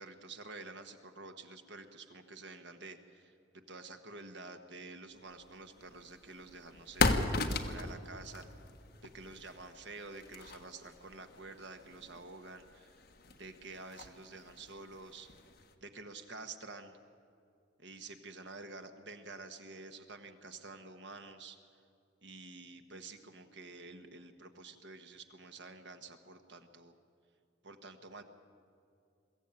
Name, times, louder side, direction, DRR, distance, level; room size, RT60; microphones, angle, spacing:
voice 1, 0.0-8.5 9.0-13.0 13.3-15.3 15.8-17.0 17.8-21.8 22.2-26.9 27.6-28.2, right 3 dB, 60° right, 7 dB, 1.4 m, -49 dB
sound 1, 5.4-15.7, left 3 dB, 50° left, 1.4 m, -38 dB
22.5 x 15.0 x 8.9 m, 2.5 s
head